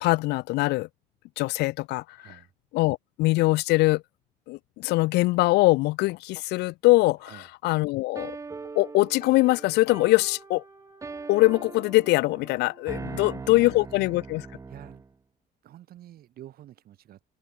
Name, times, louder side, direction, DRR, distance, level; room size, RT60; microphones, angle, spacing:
voice 1, 0.0-0.9 1.4-2.2 2.7-4.0 4.5-7.2 7.6-8.3 8.8-10.6 11.3-14.5, left 21 dB, 80° left, 0.4 m, -22 dB
voice 2, 2.2-2.5 7.2-7.5 13.0-14.2 14.7-15.1 15.6-17.3, right 12 dB, 65° right, 2.3 m, -49 dB
sound 1, 8.2-15.1, right 4 dB, 20° right, 0.7 m, -41 dB
sound 2, 9.2-13.8 14.1-14.5, left 10 dB, 55° left, 2.8 m, -56 dB
cardioid pair, 110°, 17 cm